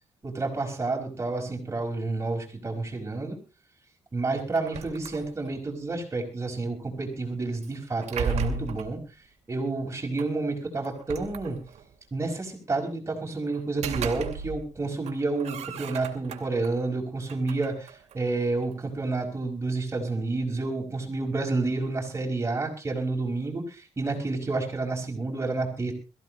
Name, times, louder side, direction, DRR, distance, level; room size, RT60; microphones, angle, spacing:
voice 1, 0.2-3.4 4.1-9.0 9.5-11.6 12.1-25.9, right 3 dB, 25° right, 1 dB, 5.3 m, -30 dB
sound 1, 4.5-5.7 7.6-9.0 10.2-10.3 10.8-11.9 13.5-14.7 15.0-16.7 17.2-18.8, right 6 dB, 85° right, 2.7 m, -36 dB
22.0 x 15.5 x 3.1 m, 0.32 s
cardioid pair, 130°, 11 cm